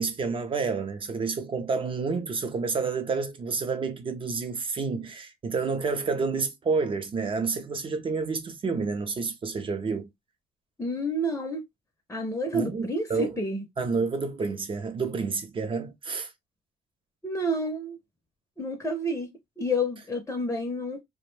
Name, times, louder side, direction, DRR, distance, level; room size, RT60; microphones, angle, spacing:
voice 1, 0.0-10.1 12.5-13.4 13.8-16.3, right 4 dB, 30° right, 0.6 m, -29 dB
voice 2, 10.8-11.6 12.1-13.6 17.2-18.0 18.6-19.3 19.6-21.0, equal, 15° left, 0.6 m, -29 dB
2.5 x 2.1 x 3.1 m
cardioid pair, 110°, 17 cm